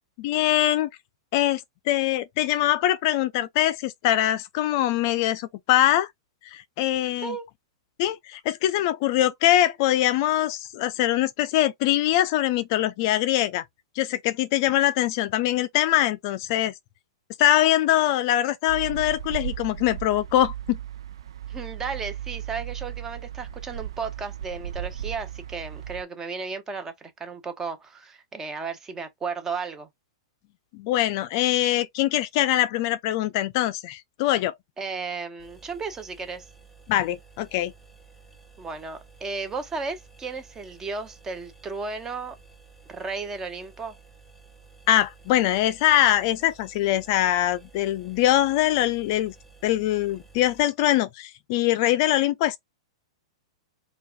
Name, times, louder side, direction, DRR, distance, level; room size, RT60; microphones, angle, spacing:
voice 1, 0.2-0.9 1.3-1.6 1.9-6.1 6.4-7.3 8.0-13.6 14.0-16.7 17.4-20.8 30.7-34.5 36.9-37.7 44.9-49.3 49.6-52.6, left 13 dB, 50° left, 0.4 m, -23 dB
sound 1, 18.7-26.0, right 10 dB, 75° right, 0.6 m, -36 dB
voice 2, 21.5-29.9 34.8-36.5 38.6-42.4 42.9-44.0, right 4 dB, 15° right, 1.0 m, -34 dB
sound 2, 35.4-50.6, right 4 dB, 5° left, 1.4 m, -53 dB
4.5 x 2.3 x 2.5 m
hypercardioid pair, 125°, 3 cm